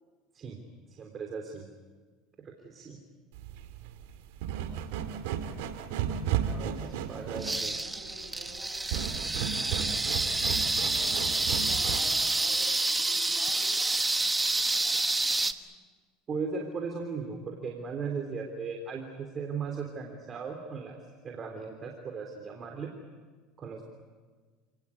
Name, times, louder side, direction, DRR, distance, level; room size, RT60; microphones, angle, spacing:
voice 1, 0.9-1.7 2.4-3.0 6.5-7.7 9.4-9.6 16.3-21.0 21.2-22.9 23.6-23.8, right 5 dB, 35° right, 2 dB, 3.4 m, -37 dB
sound 1, 3.3-12.3, right 9 dB, 80° right, 2.1 m, -34 dB
voice 2, 7.3-8.8 9.5-14.0 14.7-15.7, equal, 20° left, -1 dB, 7.4 m, -50 dB
sound 2, 7.4-15.5, right 2 dB, 10° right, 1.3 m, -28 dB
29.5 x 19.0 x 8.4 m, 1.4 s
supercardioid pair, 115°, 0 cm